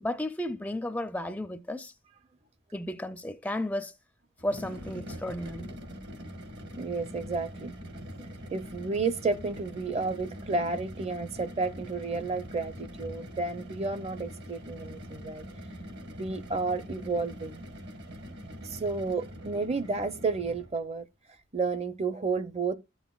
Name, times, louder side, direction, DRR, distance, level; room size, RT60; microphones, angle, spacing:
voice 1, 0.0-1.9 2.7-3.9 4.4-5.8, left 1 dB, 10° left, 0.4 m, -33 dB
sound 1, 4.4-20.8, equal, 60° right, 1.6 m, -43 dB
voice 2, 6.8-7.7 8.2-15.4 16.2-17.6 18.6-21.0 21.5-22.7, right 4 dB, 35° right, 0.6 m, -31 dB
12.5 x 7.2 x 2.3 m
head